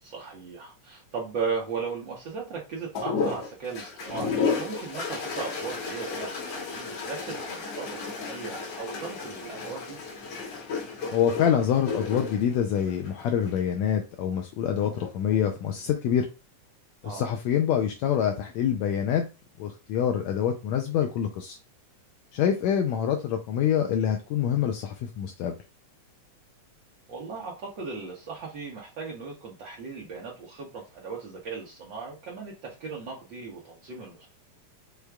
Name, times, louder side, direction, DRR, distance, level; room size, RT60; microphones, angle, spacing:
voice 1, 0.0-10.0 17.0-17.2 27.1-34.3, right 5 dB, 85° right, -3 dB, 1.0 m, -37 dB
sound 1, 2.9-13.6 14.8-15.4, left 4 dB, 60° left, 1.8 m, -33 dB
voice 2, 11.1-16.3 17.0-19.3 19.6-21.6 22.3-25.6, left 9 dB, 80° left, 4 dB, 1.6 m, -26 dB
6.3 x 3.4 x 2.3 m, 0.30 s
omnidirectional pair, 3.4 m